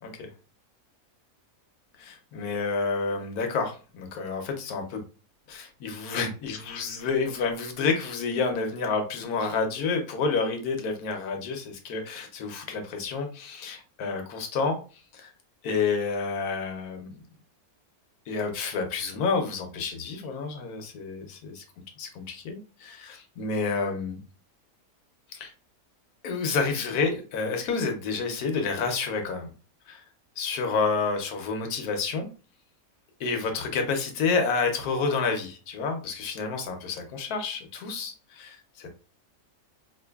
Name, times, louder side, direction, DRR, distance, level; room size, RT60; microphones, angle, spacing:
voice 1, 2.0-5.0 5.5-14.8 15.1-15.3 15.6-17.1 18.3-21.6 22.0-24.2 25.3-25.5 26.2-29.5 29.9-30.0 30.4-32.3 33.2-38.9, left 4 dB, 85° left, 5 dB, 1.2 m, -29 dB
4.7 x 2.5 x 2.3 m, 0.35 s
omnidirectional pair, 1.6 m